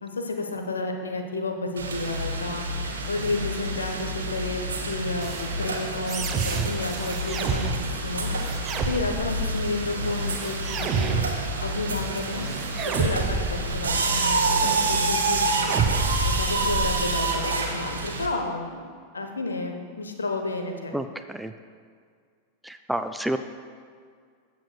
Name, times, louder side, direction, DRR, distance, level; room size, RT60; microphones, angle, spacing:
voice 1, 0.0-2.6 3.1-7.7 8.0-8.3 8.8-11.2 11.6-12.5 12.8-15.7 16.2-18.8 19.1-20.9, left 3 dB, 75° left, 4 dB, 0.8 m, -31 dB
sound 1, 1.8-18.3, right 2 dB, 70° right, 0.9 m, -28 dB
sound 2, 5.2-17.2, right 5 dB, 30° right, 0.7 m, -31 dB
voice 2, 20.9-21.5 22.6-23.4, right 1 dB, 5° right, 8 dB, 0.3 m, -29 dB
14.5 x 7.1 x 2.3 m, 2.1 s
figure-of-eight pair, 90°, 0 cm